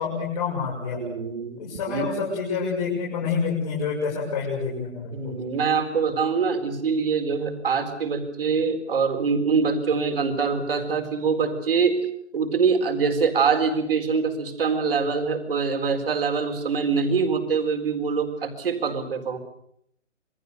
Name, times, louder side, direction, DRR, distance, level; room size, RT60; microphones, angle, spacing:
voice 1, 0.0-1.0 1.6-5.3, left 5 dB, 30° left, -5 dB, 7.0 m, -28 dB
voice 2, 1.0-2.1 5.1-12.0 12.3-19.4, right 5 dB, 50° right, 6 dB, 4.3 m, -24 dB
27.5 x 24.0 x 6.8 m, 0.72 s
hypercardioid pair, 170°, 36 cm